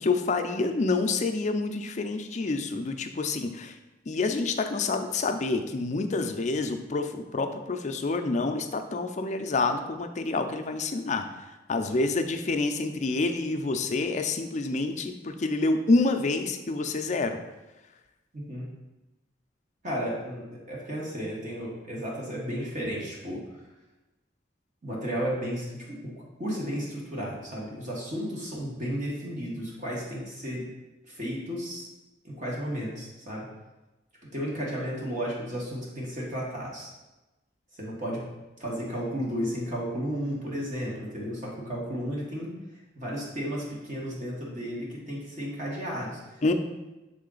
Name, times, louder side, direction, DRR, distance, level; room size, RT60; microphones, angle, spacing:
voice 1, 0.0-3.7 4.1-11.3 11.7-17.4 46.4-46.5, left 3 dB, 40° left, 6 dB, 0.4 m, -27 dB
voice 2, 18.3-18.7 19.8-23.4 24.8-26.1 26.4-30.6 31.1-31.8 32.2-33.4 34.3-36.9 37.7-38.2 38.6-42.5 42.9-46.2, equal, 45° right, -4 dB, 1.4 m, -33 dB
6.4 x 3.7 x 3.9 m, 1.1 s
head